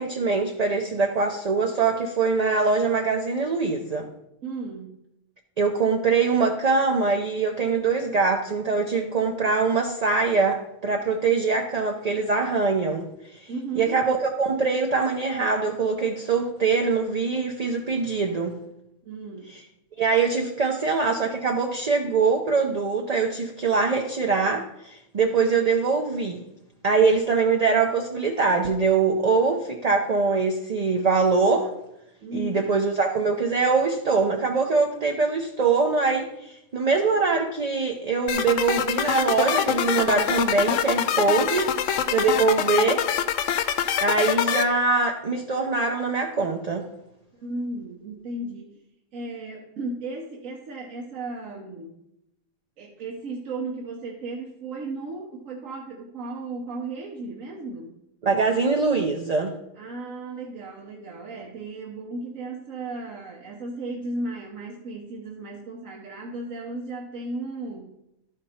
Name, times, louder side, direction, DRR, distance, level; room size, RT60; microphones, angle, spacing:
voice 1, 0.0-4.1 5.6-13.5 13.8-18.6 20.0-26.4 26.8-31.7 32.3-41.7 42.1-43.1 44.0-46.8 58.2-59.5, right 4 dB, 40° right, 2 dB, 0.6 m, -23 dB
voice 2, 4.4-5.0 13.5-14.0 19.0-19.6 32.2-32.7 47.3-48.7 49.1-51.9 52.8-57.9 59.8-67.9, right 2 dB, 70° right, 0 dB, 1.3 m, -35 dB
sound 1, 38.3-44.6, left 9 dB, 70° left, 0.9 m, -25 dB
12.0 x 5.1 x 4.3 m, 0.82 s
omnidirectional pair, 1.4 m